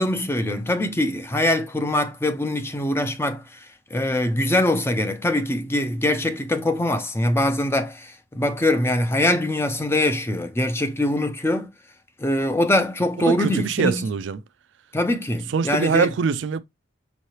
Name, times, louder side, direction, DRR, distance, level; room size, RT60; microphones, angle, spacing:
voice 1, 0.0-3.7 3.9-11.7 12.2-14.0 14.9-16.1, left 1 dB, 15° left, 0.5 m, -23 dB
voice 2, 13.2-14.4 15.5-16.6, right 5 dB, 70° right, 0.4 m, -23 dB
5.5 x 3.1 x 2.8 m
head